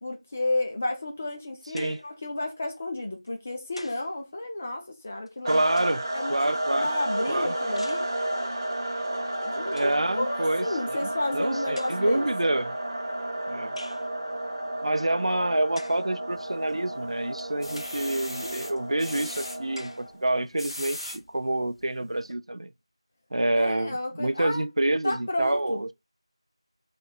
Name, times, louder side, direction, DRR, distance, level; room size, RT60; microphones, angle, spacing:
voice 1, 0.0-5.7 6.1-6.4 6.7-8.0 9.4-12.5 23.6-24.6 25.0-25.8, left 2 dB, 20° left, 0.3 m, -32 dB
sound 1, 1.8-2.2 3.3-4.1 5.3-6.2 7.8-8.1 9.3-9.4 9.6-10.0 11.0-11.1 11.7-12.3 13.8-14.1 15.7-16.1 16.8-16.9 17.7-18.1 18.8-18.9 19.7-20.1, left 1 dB, 80° left, 0.5 m, -46 dB
voice 2, 5.4-6.9 7.3-7.5 9.7-12.7 13.5-13.7 14.8-22.7 23.3-25.9, right 1 dB, 75° right, 0.3 m, -27 dB
sound 2, 5.5-20.2, right 1 dB, 35° right, 0.6 m, -32 dB
sound 3, 16.3-16.9 17.4-19.6 20.4-21.2 21.8-21.9 22.2-22.3, left 1 dB, 60° left, 1.1 m, -38 dB
3.0 x 2.1 x 3.7 m
figure-of-eight pair, 175°, 3 cm